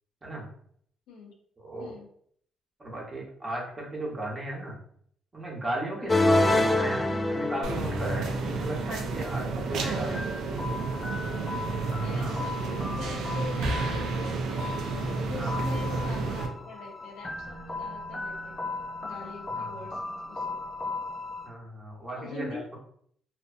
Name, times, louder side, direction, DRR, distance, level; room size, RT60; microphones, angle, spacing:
voice 1, 1.6-1.9 2.8-4.8 5.3-10.2 12.1-12.4 15.3-15.6 19.5-19.8 21.4-22.6, right 1 dB, 25° right, -3 dB, 1.0 m, -36 dB
voice 2, 6.0-6.4 9.8-10.2 12.0-14.8 15.2-18.6 19.0-20.7 22.1-22.8, left 3 dB, 90° left, 1 dB, 0.6 m, -43 dB
sound 1, 6.1-21.5, left 2 dB, 20° left, 0.3 m, -32 dB
sound 2, 7.6-16.5, right 3 dB, 80° right, 0.4 m, -31 dB
2.6 x 2.3 x 2.5 m, 0.63 s
cardioid pair, 90°, 0 cm